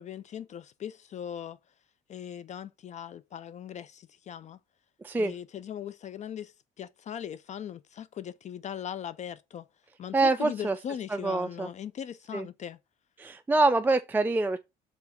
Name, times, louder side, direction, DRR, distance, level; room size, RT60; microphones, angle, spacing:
voice 1, 0.0-1.6 2.1-4.6 5.1-9.7 10.0-12.8, left 9 dB, 45° left, 0.5 m, -39 dB
voice 2, 10.1-10.8 11.1-11.7 12.3-12.5 13.2-14.6, right 3 dB, 10° right, 0.4 m, -25 dB
4.8 x 3.9 x 5.7 m
cardioid pair, 110°, 17 cm